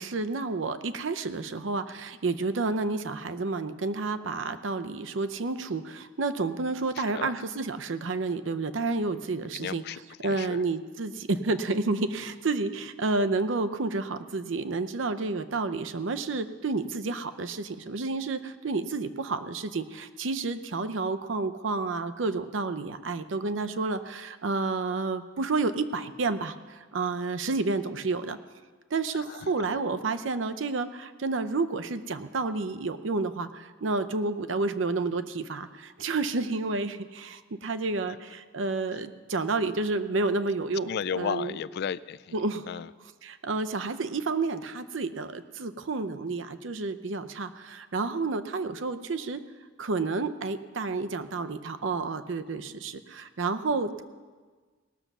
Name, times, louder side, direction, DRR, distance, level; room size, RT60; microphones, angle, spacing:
voice 1, 0.0-9.8 10.2-28.4 28.9-40.9 41.2-41.6 42.3-42.7 43.2-49.4 49.8-54.0, right 3 dB, 75° right, 10 dB, 0.6 m, -30 dB
voice 2, 7.0-7.3 9.5-10.6 29.3-29.5 38.1-38.2 40.9-42.4 42.7-42.9, left 7 dB, 55° left, 18 dB, 0.3 m, -34 dB
18.5 x 6.7 x 6.1 m, 1.4 s
head